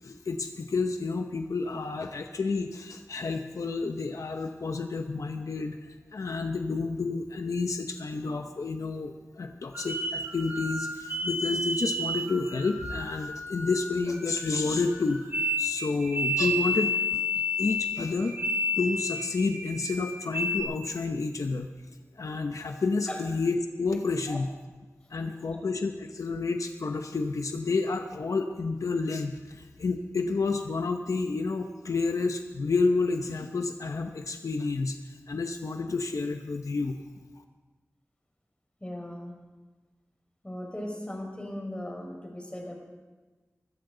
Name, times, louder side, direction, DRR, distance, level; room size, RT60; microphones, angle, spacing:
voice 1, 0.0-17.3 17.6-18.4 18.8-21.7 22.2-24.5 25.1-35.0 35.3-37.0, left 3 dB, 90° left, 5 dB, 0.9 m, -30 dB
sound 1, 9.7-20.6, left 1 dB, 40° right, 3.7 m, -31 dB
voice 2, 38.8-39.3 40.4-42.8, left 1 dB, 20° left, 0 dB, 5.2 m, -38 dB
23.5 x 13.5 x 3.9 m, 1.3 s
wide cardioid pair, 55°, 5 cm